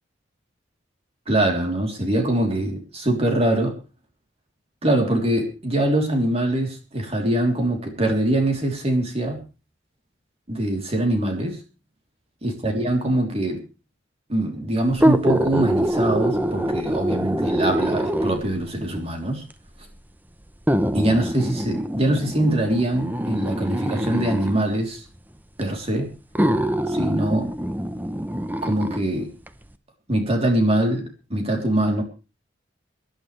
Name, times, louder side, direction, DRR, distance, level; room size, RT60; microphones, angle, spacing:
voice 1, 1.3-3.8 4.8-9.4 10.5-11.6 12.4-13.6 14.3-19.4 20.9-25.0 25.6-26.1 26.9-27.5 28.6-29.3 30.1-32.0, right 1 dB, 35° right, 2 dB, 3.5 m, -23 dB
sound 1, 14.9-18.6 19.5-19.6 20.7-24.6 25.6-25.7 26.3-29.0 29.5-29.6, equal, 10° right, 0.9 m, -24 dB
24.5 x 11.5 x 3.4 m, 0.33 s
head